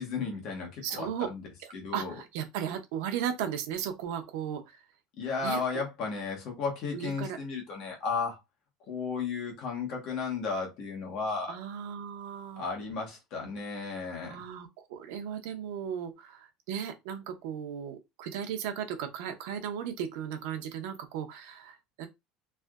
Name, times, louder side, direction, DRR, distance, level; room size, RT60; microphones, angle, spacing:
voice 1, 0.0-1.4 1.7-2.1 5.2-8.4 8.9-11.6 12.6-14.4, left 5 dB, 45° left, 1.2 m, -34 dB
voice 2, 0.8-1.3 1.9-4.8 5.4-5.6 6.9-7.4 11.5-12.6 14.3-22.1, right 9 dB, 80° right, 0.6 m, -36 dB
3.3 x 2.6 x 2.4 m
cardioid pair, 175°, 0 cm